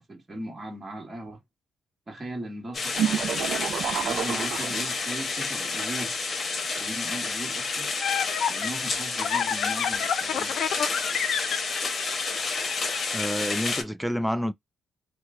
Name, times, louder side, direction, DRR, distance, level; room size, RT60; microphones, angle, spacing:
voice 1, 0.0-1.4 2.1-3.5 4.0-6.2 6.8-7.9 8.5-10.6, right 1 dB, 25° right, 1.4 m, -38 dB
sound 1, 2.7-13.8, left 4 dB, 45° left, 0.9 m, -30 dB
sound 2, 3.0-5.3, right 9 dB, 75° right, 0.5 m, -29 dB
sound 3, 7.5-13.3, left 8 dB, 70° left, 0.5 m, -29 dB
voice 2, 13.1-14.5, equal, ahead, 0.4 m, -28 dB
3.0 x 2.2 x 3.5 m
cardioid pair, 90°, 0 cm